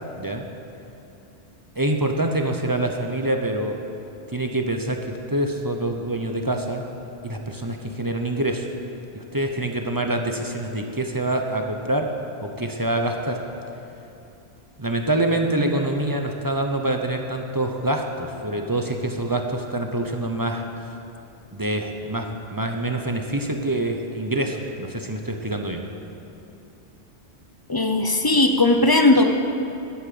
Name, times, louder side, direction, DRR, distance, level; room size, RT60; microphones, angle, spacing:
voice 1, 1.8-3.8 4.3-6.9 7.2-8.7 9.1-12.1 12.4-13.4 14.8-20.7 21.5-25.8, right 1 dB, 20° right, 3 dB, 0.8 m, -25 dB
voice 2, 27.7-29.3, left 2 dB, 25° left, 5 dB, 0.6 m, -17 dB
12.0 x 8.6 x 7.8 m, 2.8 s
omnidirectional pair, 1.2 m